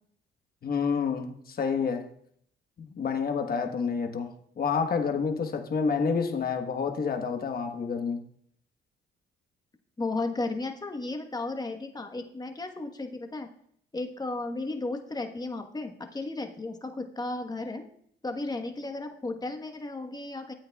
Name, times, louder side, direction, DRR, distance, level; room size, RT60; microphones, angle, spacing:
voice 1, 0.6-2.0 2.8-4.3 4.6-8.2, left 5 dB, 50° left, 1.3 m, -28 dB
voice 2, 10.0-13.5 13.9-17.8 18.2-20.5, left 2 dB, 20° left, 1.2 m, -34 dB
13.0 x 8.7 x 2.3 m
cardioid pair, 90°, 20 cm